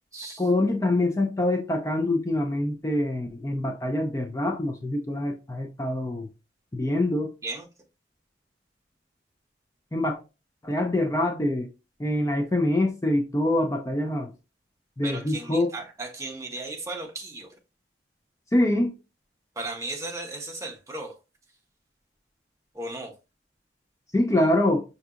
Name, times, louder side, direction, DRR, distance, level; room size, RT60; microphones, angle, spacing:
voice 1, 0.4-6.3 6.7-7.3 9.9-10.2 10.6-11.7 12.0-14.3 15.0-15.7 18.5-18.9 24.1-24.8, left 1 dB, 15° left, 0.4 m, -25 dB
voice 2, 15.0-17.5 19.6-21.1 22.8-23.1, right 2 dB, 15° right, 0.7 m, -35 dB
5.8 x 2.8 x 2.4 m
head